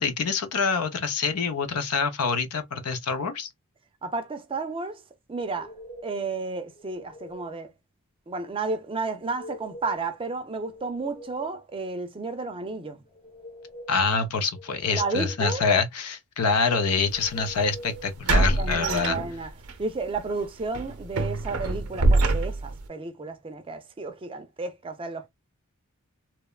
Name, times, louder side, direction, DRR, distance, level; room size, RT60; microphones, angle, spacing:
voice 1, 0.0-3.5 13.9-19.2, left 5 dB, 90° left, 0.6 m, -26 dB
voice 2, 4.0-5.0 5.3-5.7 6.0-7.7 8.3-13.0 14.9-15.6 18.6-19.5 19.8-25.3, right 3 dB, 25° right, 0.4 m, -32 dB
sound 1, 5.4-6.2 6.7-7.6 9.2-10.2 10.5-11.6 13.1-14.1 14.5-15.5 17.1-18.2, equal, 30° left, 0.5 m, -45 dB
sound 2, 17.1-17.3 18.3-19.7 20.1-20.3 20.7-22.8, right 2 dB, 80° right, 0.6 m, -24 dB
3.0 x 2.1 x 2.2 m
head